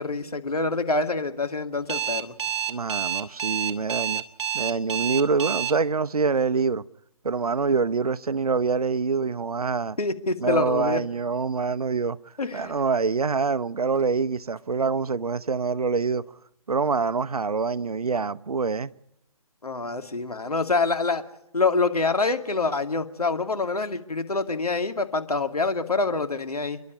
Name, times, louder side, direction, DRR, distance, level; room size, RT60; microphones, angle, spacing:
voice 1, 0.0-2.3 10.0-11.0 12.4-12.8 19.6-21.2 21.5-26.8, left 3 dB, 85° left, 2.4 m, -26 dB
Alarm, 1.9-5.7, right 10 dB, 45° right, 2.4 m, -28 dB
voice 2, 2.7-4.2 4.5-6.8 7.2-10.0 10.4-12.2 12.5-16.2 16.7-18.9, right 4 dB, 80° right, 0.9 m, -25 dB
29.5 x 12.0 x 9.7 m
figure-of-eight pair, 145°, 19 cm